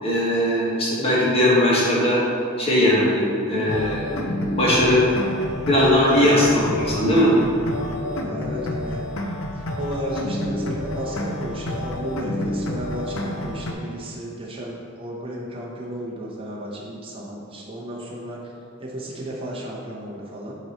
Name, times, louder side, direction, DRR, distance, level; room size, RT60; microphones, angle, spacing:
voice 1, 0.0-2.2 2.6-5.0 5.7-7.3, left 1 dB, 30° left, -6 dB, 1.4 m, -19 dB
sound 1, 3.7-13.7, left 1 dB, 75° left, 0.6 m, -29 dB
voice 2, 8.2-9.0 9.7-18.4 18.8-20.6, equal, 25° right, -4 dB, 0.8 m, -33 dB
7.8 x 3.0 x 4.2 m, 2.5 s
head